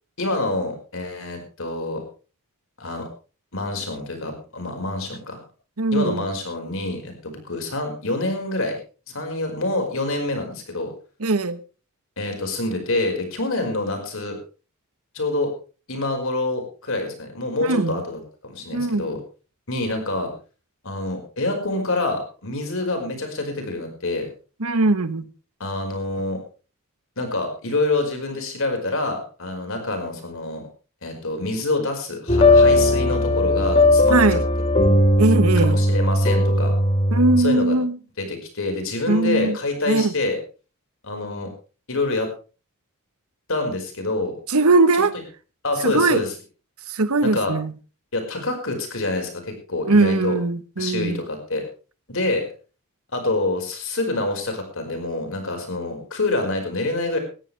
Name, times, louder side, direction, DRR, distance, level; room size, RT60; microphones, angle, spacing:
voice 1, 0.2-2.0 2.8-3.1 3.5-5.4 5.9-8.8 9.1-10.9 12.2-14.4 15.1-15.5 15.9-19.2 19.7-20.3 20.8-24.3 25.6-26.4 27.2-30.7 31.0-34.4 35.6-36.7 37.4-37.7 38.2-40.4 41.0-41.5 41.9-42.3 43.5-44.3 45.6-46.3 47.2-47.5 48.1-49.3 49.7-50.4 50.8-51.6 52.1-52.5 53.1-57.2, left 2 dB, 65° left, 5.1 m, -26 dB
voice 2, 5.8-6.2 11.2-11.6 17.6-18.0 18.7-19.1 24.6-25.3 34.1-34.4 35.2-35.8 37.1-38.0 39.1-39.6 39.9-40.1 44.5-45.1 45.8-46.2 46.9-47.7 49.9-51.2, right 3 dB, 80° right, 1.1 m, -20 dB
sound 1, 32.3-37.4, left 2 dB, 30° left, 1.5 m, -17 dB
18.5 x 14.0 x 3.4 m
head